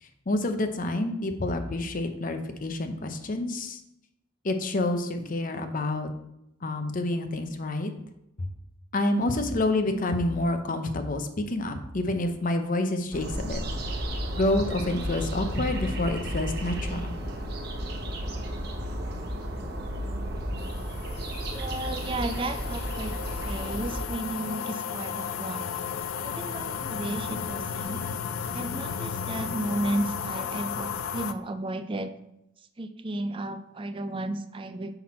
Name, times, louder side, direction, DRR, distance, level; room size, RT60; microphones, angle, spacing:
voice 1, 0.0-3.8 4.4-6.1 6.6-7.9 8.4-8.5 8.9-13.6 14.3-17.1, left 2 dB, 40° left, 7 dB, 0.6 m, -28 dB
sound 1, 13.1-24.1, equal, 50° right, 0.9 m, -33 dB
sound 2, 20.6-31.3, left 7 dB, 90° left, 0.4 m, -34 dB
voice 2, 21.5-23.2 23.4-25.7 26.2-28.0 28.5-32.1 32.8-35.0, right 1 dB, 25° right, 10 dB, 0.4 m, -33 dB
5.9 x 5.8 x 4.2 m, 0.84 s
head